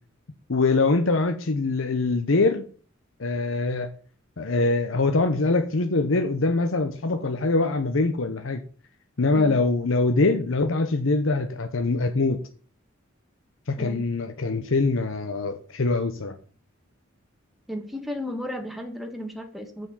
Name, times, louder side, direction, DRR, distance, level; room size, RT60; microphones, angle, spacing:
voice 1, 0.5-2.6 3.2-3.9 4.4-8.6 9.2-12.4 13.7-16.3, left 3 dB, 75° left, 7 dB, 0.9 m, -23 dB
voice 2, 17.7-19.9, left 1 dB, ahead, 3 dB, 1.6 m, -34 dB
7.2 x 6.2 x 7.2 m, 0.42 s
head